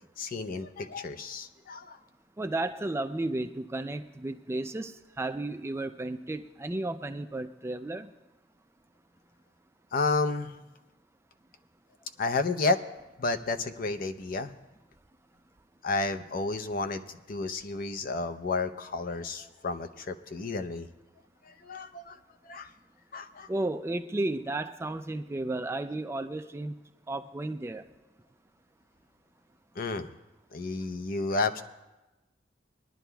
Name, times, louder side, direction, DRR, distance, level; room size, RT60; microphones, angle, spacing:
voice 1, 0.2-2.0 9.9-10.5 12.2-12.8 13.2-14.5 15.8-20.9 21.5-22.2 22.4-22.7 23.1-23.5 29.8-30.1 30.5-31.6, left 3 dB, 50° left, 9 dB, 0.6 m, -31 dB
voice 2, 2.4-8.1 23.5-27.8, right 2 dB, 15° right, 8 dB, 0.3 m, -33 dB
21.5 x 11.0 x 2.3 m, 1.0 s
head